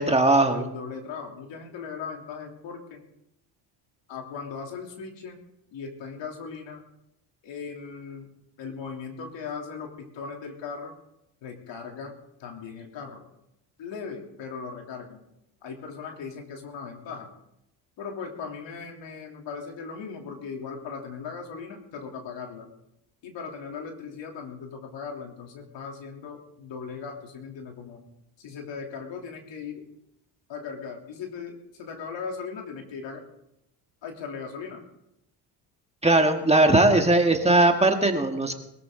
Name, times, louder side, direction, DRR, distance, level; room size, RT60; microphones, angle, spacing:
voice 1, 0.0-0.7 36.0-38.5, right 2 dB, 15° right, 4 dB, 1.7 m, -19 dB
voice 2, 0.5-3.0 4.1-5.4 5.7-6.8 7.4-8.3 8.6-10.9 11.4-12.1 12.4-13.2 13.8-15.2 15.6-17.3 18.0-22.7 23.2-28.0 28.4-29.8 30.5-33.2 34.0-34.8, left 5 dB, 65° left, 2 dB, 3.3 m, -38 dB
21.5 x 13.5 x 3.9 m, 0.82 s
supercardioid pair, 90°, 48 cm